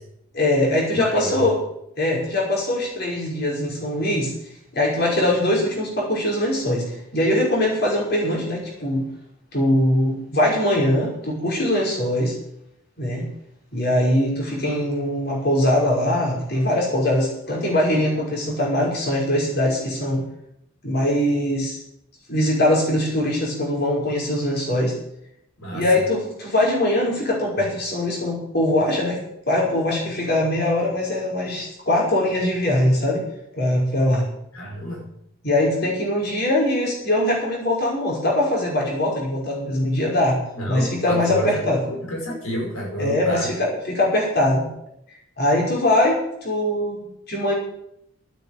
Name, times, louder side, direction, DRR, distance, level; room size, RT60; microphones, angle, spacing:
voice 1, 0.3-1.6 2.0-4.3 4.7-9.1 9.5-12.3 13.0-13.3 13.7-20.2 20.8-21.8 22.3-24.9 25.7-33.2 33.6-34.3 35.4-40.4 40.7-41.8 43.0-44.7 45.4-47.5, left 1 dB, 50° left, -3 dB, 5.6 m, -22 dB
voice 2, 0.9-1.5 25.6-25.8 34.5-35.0 40.6-43.5, equal, 85° left, -1 dB, 5.3 m, -29 dB
13.0 x 9.3 x 8.7 m, 0.76 s
head